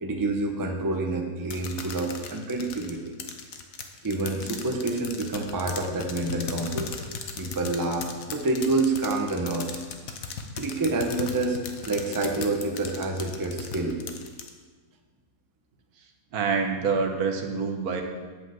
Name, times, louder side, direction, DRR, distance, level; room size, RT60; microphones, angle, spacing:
voice 1, 0.0-3.1 4.0-6.9 7.4-9.8 10.5-14.0, right 2 dB, 20° right, 2 dB, 0.7 m, -28 dB
sound 1, 1.5-14.5, left 6 dB, 65° left, 1.2 m, -37 dB
voice 2, 16.3-18.0, right 5 dB, 75° right, 4 dB, 1.5 m, -26 dB
8.2 x 5.4 x 7.5 m, 1.4 s
omnidirectional pair, 1.6 m